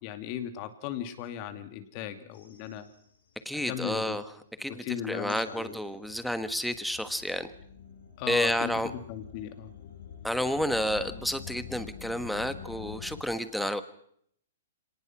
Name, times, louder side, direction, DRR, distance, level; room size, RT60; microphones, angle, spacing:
voice 1, 0.0-2.9 3.6-4.2 4.7-5.8 8.2-9.7, left 10 dB, 40° left, 9 dB, 2.4 m, -37 dB
sound 1, 2.3-3.5 5.2-13.2, left 8 dB, 70° left, 6.8 m, -47 dB
voice 2, 3.4-4.2 4.6-7.5 8.3-8.9 10.2-13.8, equal, ahead, 11 dB, 1.4 m, -30 dB
24.5 x 19.0 x 6.1 m, 0.69 s
hypercardioid pair, 145°, 0 cm